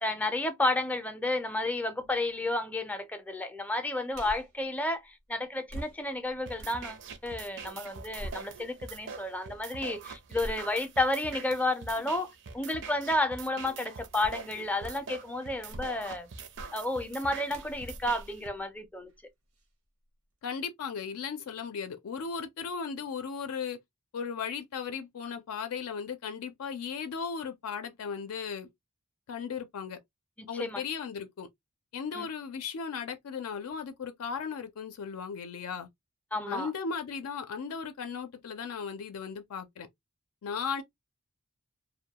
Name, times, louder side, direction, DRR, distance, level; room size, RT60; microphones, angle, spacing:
voice 1, 0.0-16.3 16.7-19.1 30.4-30.8 32.2-32.3 36.3-36.7, left 2 dB, 5° left, 0.4 m, -31 dB
sound 1, 4.1-4.6 5.7-7.5 7.8-8.9 9.5-9.6 10.4-11.1 11.9-12.2 14.2-14.5 14.8-15.2 15.5-16.2 16.6-16.8 17.5-19.2 19.6-19.7, right 1 dB, 85° right, 0.8 m, -45 dB
sound 2, 6.5-18.5, right 5 dB, 55° right, 0.5 m, -44 dB
voice 2, 20.4-23.8 24.1-28.7 29.3-30.0 30.5-31.5 31.9-35.9 36.5-39.9 40.4-40.8, left 6 dB, 75° left, 0.4 m, -36 dB
2.2 x 2.1 x 2.7 m
head